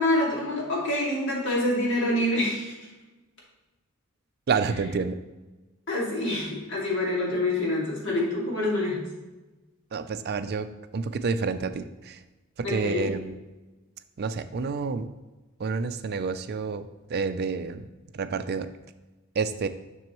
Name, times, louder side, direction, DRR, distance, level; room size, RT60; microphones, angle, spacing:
voice 1, 0.0-2.7 5.9-9.0 12.6-13.1, left 1 dB, 65° left, -5 dB, 2.4 m, -26 dB
voice 2, 4.5-5.2 9.9-10.7 10.9-12.2 12.6-13.4 14.2-15.1 15.6-17.9 18.1-18.7 19.4-19.7, right 5 dB, 50° right, 11 dB, 0.4 m, -29 dB
7.4 x 6.1 x 3.1 m, 1.1 s
head